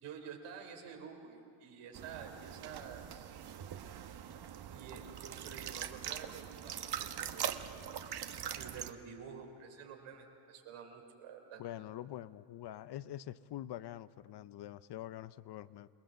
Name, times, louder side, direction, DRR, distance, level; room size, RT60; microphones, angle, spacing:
voice 1, 0.0-3.3 4.7-7.7 8.6-11.6, right 6 dB, 85° right, 2 dB, 3.6 m, -50 dB
sound 1, 1.9-8.9, right 9 dB, 50° right, 1.1 m, -42 dB
voice 2, 11.6-15.9, left 13 dB, 55° left, 16 dB, 0.6 m, -45 dB
28.0 x 19.0 x 7.6 m, 2.5 s
cardioid pair, 110°, 49 cm